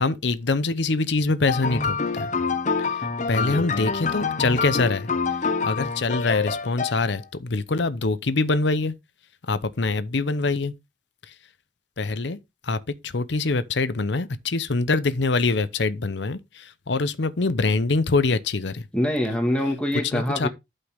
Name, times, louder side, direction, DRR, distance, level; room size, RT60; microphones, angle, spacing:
voice 1, 0.0-2.3 2.9-5.1 5.6-8.9 9.5-10.7 12.0-12.4 12.6-18.8 20.1-20.5, left 3 dB, 70° left, 0.8 m, -24 dB
sound 1, 1.5-7.2, left 4 dB, 40° left, 0.8 m, -26 dB
voice 2, 18.9-20.5, left 1 dB, 5° left, 1.7 m, -24 dB
11.5 x 5.6 x 3.5 m
head